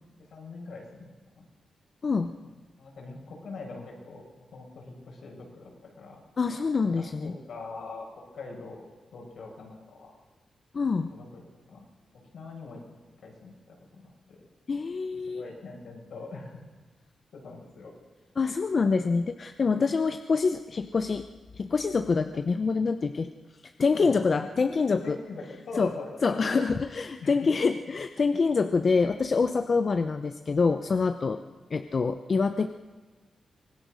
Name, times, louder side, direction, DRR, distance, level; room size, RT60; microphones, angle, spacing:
voice 1, 0.3-1.4 2.4-2.5 2.8-6.2 7.2-8.1 8.3-10.1 11.1-11.4 11.7-11.9 12.1-12.8 13.2-14.4 15.3-16.6 17.3-17.9 24.0-24.5 25.0-26.6 27.2-27.4, left 3 dB, 75° left, -1 dB, 6.4 m, -42 dB
voice 2, 2.0-2.3 6.4-7.3 10.7-11.1 14.7-15.4 18.4-21.3 21.6-23.3 23.8-25.2 25.7-25.9 26.2-31.4 31.7-32.7, left 4 dB, 45° left, 8 dB, 0.8 m, -26 dB
24.5 x 19.5 x 6.4 m, 1.3 s
wide cardioid pair, 110°, 0 cm